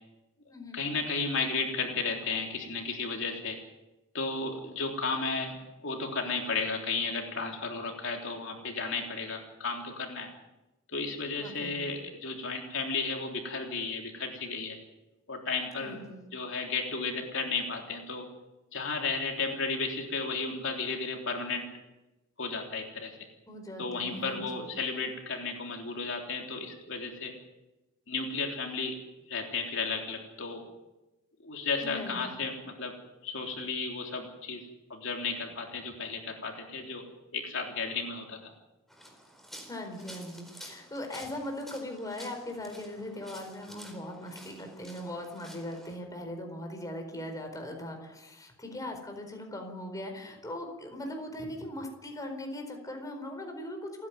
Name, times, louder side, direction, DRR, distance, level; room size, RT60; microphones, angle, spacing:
voice 1, 0.7-3.6 4.1-5.6 5.8-10.3 10.9-14.8 15.3-16.0 16.3-18.3 18.7-21.7 22.4-23.1 23.8-27.3 28.1-28.9 29.3-30.6 31.4-32.9 33.2-34.6 34.9-37.0 37.3-38.5, left 4 dB, 70° left, 1 dB, 3.6 m, -33 dB
voice 2, 11.4-11.9 15.8-16.2 23.5-24.5 31.8-32.3 39.7-54.1, left 1 dB, 20° left, 3 dB, 4.4 m, -40 dB
sound 1, 38.9-46.0, equal, ahead, 4.3 m, -50 dB
29.0 x 11.0 x 9.3 m, 1.0 s
head